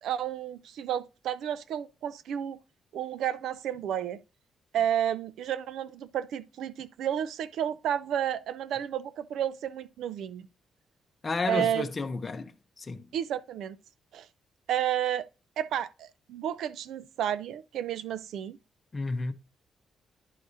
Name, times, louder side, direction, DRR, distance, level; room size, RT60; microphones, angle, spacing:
voice 1, 0.0-2.6 2.9-4.2 4.7-10.5 11.5-11.9 13.1-13.8 14.1-14.3 14.7-15.3 15.6-18.6, right 10 dB, 80° right, 0.4 m, -31 dB
voice 2, 11.2-13.1 18.9-19.3, left 3 dB, 30° left, 0.8 m, -32 dB
10.5 x 4.7 x 2.7 m
cardioid pair, 85°, 0 cm